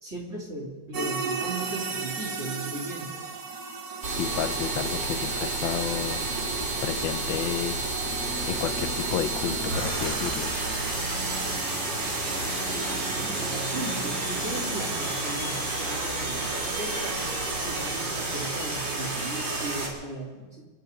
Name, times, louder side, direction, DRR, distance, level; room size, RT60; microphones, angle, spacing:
voice 1, 0.0-3.2 12.6-20.7, right 2 dB, 35° right, -3 dB, 3.5 m, -37 dB
sound 1, 0.9-18.0, right 4 dB, 55° right, 1.8 m, -38 dB
sound 2, 4.0-19.9, right 2 dB, 75° right, 3.8 m, -30 dB
voice 2, 4.2-6.3 6.8-7.8 8.4-10.5, left 10 dB, 85° left, 12 dB, 1.5 m, -31 dB
sound 3, 8.0-16.8, left 1 dB, ahead, 0.4 m, -43 dB
26.5 x 9.2 x 5.3 m, 1.4 s
omnidirectional pair, 2.0 m